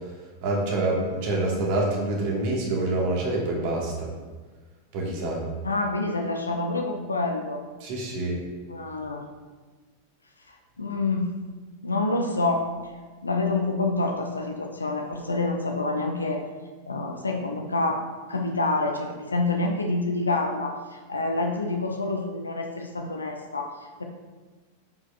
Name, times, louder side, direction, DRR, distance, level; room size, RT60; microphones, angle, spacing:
voice 1, 0.4-4.1 4.9-5.4 7.8-8.4, right 2 dB, 45° right, -2 dB, 1.8 m, -26 dB
voice 2, 5.6-7.6 8.7-9.2 10.8-11.3 11.8-12.7 13.2-16.4 16.9-24.0, left 2 dB, 80° left, 4 dB, 0.5 m, -27 dB
9.2 x 5.0 x 2.5 m, 1.3 s
figure-of-eight pair, 90°, 0 cm